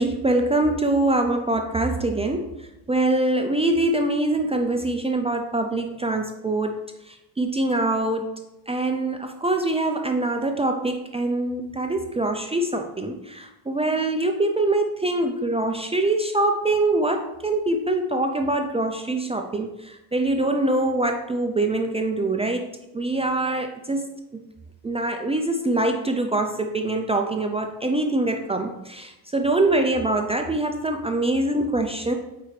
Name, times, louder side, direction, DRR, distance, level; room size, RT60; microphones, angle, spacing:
voice 1, 0.0-2.5 2.9-6.7 7.1-8.3 8.7-22.7 22.9-24.1 24.3-24.4 24.8-32.2, right 2 dB, 15° right, 4 dB, 0.4 m, -24 dB
8.8 x 4.5 x 3.2 m, 0.95 s
cardioid pair, 130°, 39 cm